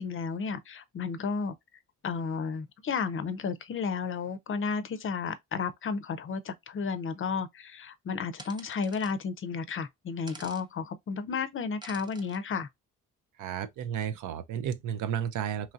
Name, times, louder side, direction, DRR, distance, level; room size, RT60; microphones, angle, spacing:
voice 1, 0.0-1.5 2.0-12.7, left 5 dB, 40° left, 0.5 m, -33 dB
sound 1, 8.4-9.1 10.3-10.6 11.8-12.4, right 2 dB, 15° right, 0.5 m, -48 dB
voice 2, 13.4-15.7, right 9 dB, 75° right, 0.5 m, -33 dB
3.0 x 2.6 x 2.3 m
cardioid pair, 90°, 31 cm